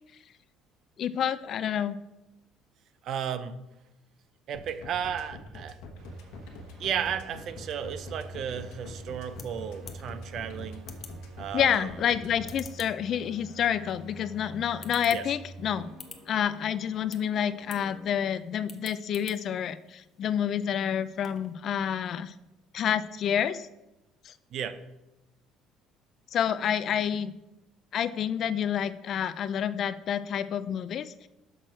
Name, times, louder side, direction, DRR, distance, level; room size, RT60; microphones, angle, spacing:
voice 1, 1.0-2.0 11.5-15.9 16.3-22.3 22.7-23.7 24.2-24.3 26.3-27.3 27.9-31.3, left 9 dB, 45° left, 15 dB, 0.3 m, -28 dB
voice 2, 3.0-3.5 4.5-5.8 6.8-10.8 11.4-11.9 15.1-15.2 24.5-24.8, right 8 dB, 50° right, 13 dB, 0.5 m, -34 dB
sound 1, 4.5-12.6, left 2 dB, 80° left, 1.1 m, -44 dB
sound 2, 5.9-18.1, right 1 dB, 65° right, 3.0 m, -49 dB
sound 3, 8.7-21.6, left 5 dB, 25° left, 0.7 m, -52 dB
6.5 x 6.1 x 4.4 m, 0.94 s
cardioid pair, 150°, 0 cm